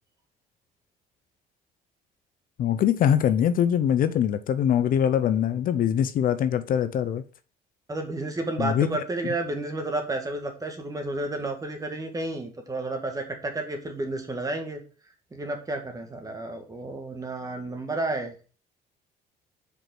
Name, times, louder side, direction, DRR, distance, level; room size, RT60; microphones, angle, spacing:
voice 1, 2.6-7.2 8.6-8.9, left 9 dB, 55° left, 0.6 m, -23 dB
voice 2, 7.9-14.8 15.3-18.4, right 2 dB, 20° right, 1.7 m, -31 dB
5.2 x 4.7 x 6.0 m
cardioid pair, 110°, 17 cm